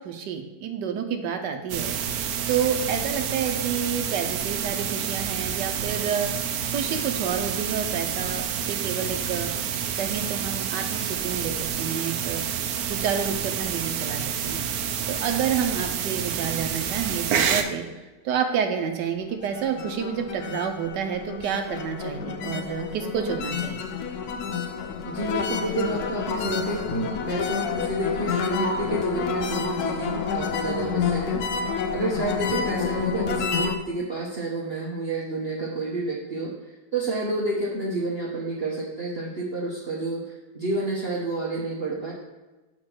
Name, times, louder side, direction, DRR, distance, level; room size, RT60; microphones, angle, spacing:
voice 1, 0.0-6.3 6.7-9.5 9.9-17.8 18.2-23.8, right 7 dB, 90° right, 5 dB, 1.4 m, -29 dB
sound 1, 1.7-17.6, right 8 dB, 70° right, 1.0 m, -28 dB
sound 2, 19.3-33.8, left 5 dB, 70° left, 1.1 m, -29 dB
voice 2, 25.1-31.4 31.9-36.5 36.9-42.1, right 2 dB, 45° right, -4 dB, 1.0 m, -29 dB
6.6 x 3.9 x 5.9 m, 1.2 s
omnidirectional pair, 1.8 m